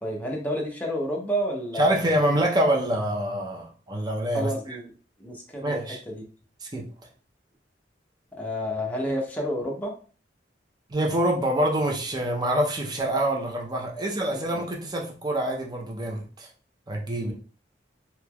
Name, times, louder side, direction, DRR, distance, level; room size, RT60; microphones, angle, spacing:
voice 1, 0.0-2.2 4.3-4.9 5.2-5.8 6.1-6.2 8.3-10.0 14.5-14.6 17.2-17.3, equal, 10° left, -1 dB, 0.7 m, -30 dB
voice 2, 1.8-4.5 5.6-6.0 6.6-6.9 10.9-16.5 16.9-17.3, right 1 dB, 25° right, -1 dB, 0.6 m, -26 dB
3.2 x 2.9 x 2.3 m, 0.38 s
head